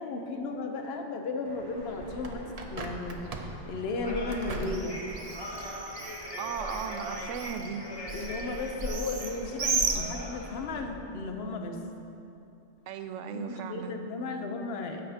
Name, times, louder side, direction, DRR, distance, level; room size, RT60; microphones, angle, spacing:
voice 1, 0.0-5.0 8.1-11.8 13.3-15.1, left 3 dB, 60° left, 4 dB, 0.9 m, -35 dB
sound 1, 1.5-10.9, equal, 20° left, 1.0 m, -42 dB
Bird, 1.8-10.7, right 3 dB, 45° right, 0.5 m, -36 dB
voice 2, 6.4-7.8 12.9-14.0, right 7 dB, 75° right, 8 dB, 0.9 m, -36 dB
10.5 x 8.7 x 2.8 m, 2.7 s
omnidirectional pair, 1.3 m